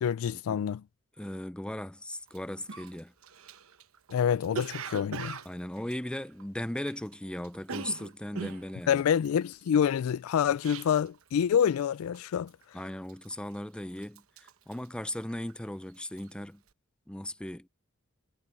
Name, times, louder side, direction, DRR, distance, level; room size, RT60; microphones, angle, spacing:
voice 1, 0.0-0.8 4.1-5.4 8.9-12.5, left 8 dB, 85° left, 0.3 m, -27 dB
voice 2, 1.2-3.1 5.5-9.0 12.7-16.6 17.1-17.7, left 1 dB, 5° left, 0.5 m, -37 dB
Cough, 2.3-2.4 2.7-7.1 7.4-11.2 11.5-11.9 12.1-12.6 13.1-13.7 14.0-15.7 16.0-16.3, right 5 dB, 80° right, 1.0 m, -41 dB
head